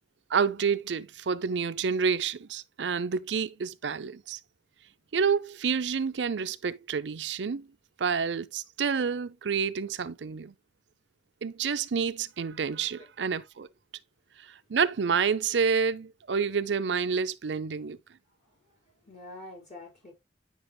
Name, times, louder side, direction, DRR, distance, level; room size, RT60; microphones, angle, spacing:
voice 1, 0.3-4.4 5.1-7.7 8.0-10.5 11.4-13.7 14.7-18.0, right 6 dB, 80° right, 0.6 m, -28 dB
voice 2, 18.4-20.1, left 2 dB, 40° left, 4.4 m, -48 dB
9.3 x 6.1 x 2.2 m
head